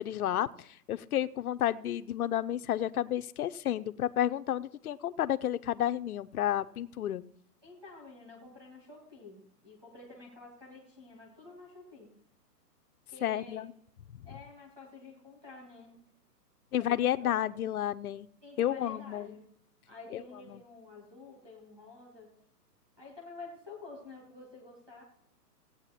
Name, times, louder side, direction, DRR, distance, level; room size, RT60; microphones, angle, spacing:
voice 1, 0.0-7.2 13.2-13.7 16.7-18.3 18.6-19.4 20.1-20.2 20.5-20.6, left 11 dB, 60° left, 10 dB, 0.6 m, -31 dB
voice 2, 7.6-12.1 13.1-13.6 14.2-16.0 16.8-17.3 18.4-19.4 19.9-22.3 23.0-25.0, left 3 dB, 10° right, -4 dB, 1.7 m, -50 dB
15.5 x 8.7 x 4.1 m, 0.74 s
hypercardioid pair, 175°, 49 cm